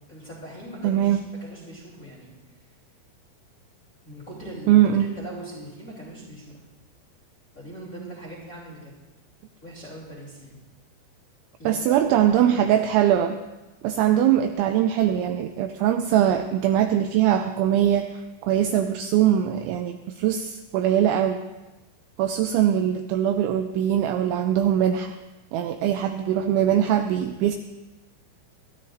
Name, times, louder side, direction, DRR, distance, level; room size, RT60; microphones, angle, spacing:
voice 1, 0.1-2.3 4.0-6.6 7.5-8.9 9.6-10.6 11.6-12.7, equal, 20° left, -5 dB, 2.6 m, -40 dB
voice 2, 0.8-1.2 4.7-5.1 11.7-13.4 13.8-21.4 22.2-25.2 25.5-27.6, right 10 dB, 85° right, 7 dB, 2.7 m, -22 dB
23.0 x 13.0 x 2.6 m, 1.1 s
omnidirectional pair, 5.8 m